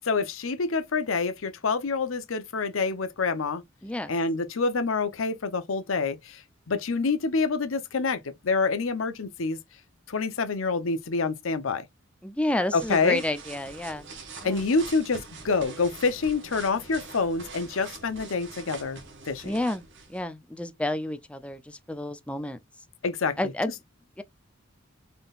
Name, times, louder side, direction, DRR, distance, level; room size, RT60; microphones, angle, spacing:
voice 1, 0.1-3.6 4.1-6.4 6.7-9.6 10.1-11.9 12.7-13.2 14.4-19.0 19.3-19.5 23.0-23.5, left 4 dB, 85° left, 0.7 m, -27 dB
voice 2, 12.2-14.1 14.4-14.7 19.4-22.6 23.4-23.7 24.2-24.3, left 1 dB, 5° left, 0.4 m, -30 dB
sound 1, 12.5-20.2, right 4 dB, 65° right, 1.3 m, -44 dB
3.9 x 3.8 x 2.4 m
head